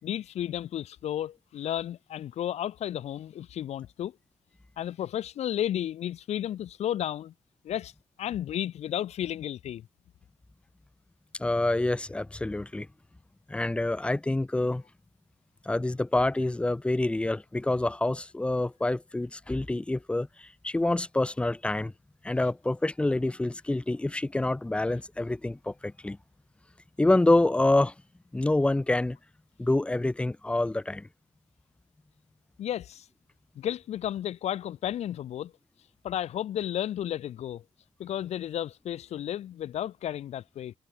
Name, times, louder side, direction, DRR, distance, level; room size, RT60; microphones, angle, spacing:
voice 1, 0.0-4.2 4.8-7.3 7.6-7.9 8.2-9.8 32.6-33.1 33.6-35.5 36.0-37.6 38.0-40.7, left 11 dB, 60° left, 4.0 m, -33 dB
voice 2, 11.4-12.9 13.5-14.8 15.7-21.9 22.2-26.2 27.0-27.9 28.3-29.2 29.6-31.1, left 2 dB, 10° left, 2.1 m, -27 dB
cardioid pair, 155°, 13 cm